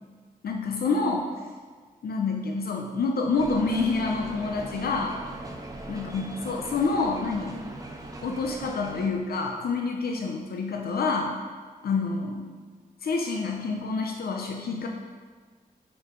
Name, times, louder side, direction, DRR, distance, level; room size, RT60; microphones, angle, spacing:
voice 1, 0.4-1.3 2.0-5.2 5.9-7.6 8.2-11.4 11.8-12.5 13.0-14.9, left 4 dB, 85° left, 1 dB, 0.6 m, -27 dB
sound 1, 3.4-9.1, right 2 dB, 20° right, 0.7 m, -40 dB
6.7 x 4.8 x 5.2 m, 1.5 s
wide cardioid pair, 145°, 15 cm